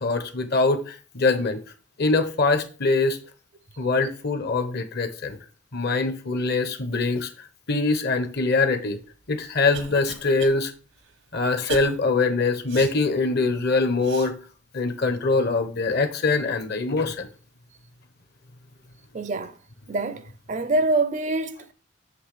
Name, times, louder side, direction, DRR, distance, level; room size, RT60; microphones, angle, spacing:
voice 1, 0.0-1.6 2.0-3.2 3.8-5.4 5.7-7.3 7.7-9.0 9.3-10.7 11.3-14.3 14.7-17.3, left 3 dB, 55° left, 0.9 m, -23 dB
Cough, 9.1-10.6 11.0-11.1 11.7-11.9 12.7-13.0 14.0-14.3, right 5 dB, 80° right, 0.9 m, -36 dB
voice 2, 19.1-19.6 19.9-21.7, right 2 dB, 40° right, 0.4 m, -25 dB
7.9 x 3.2 x 4.9 m
head